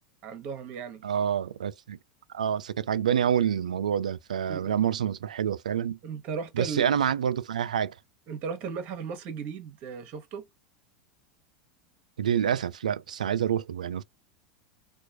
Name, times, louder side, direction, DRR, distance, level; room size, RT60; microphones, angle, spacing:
voice 1, 0.2-1.0 4.5-4.7 6.0-6.8 8.3-10.5, right 6 dB, 40° right, 1.1 m, -36 dB
voice 2, 1.0-2.0 2.3-6.0 6.6-7.9 12.2-14.0, right 9 dB, 70° right, 0.4 m, -27 dB
4.5 x 2.4 x 2.4 m
figure-of-eight pair, 85°, 4 cm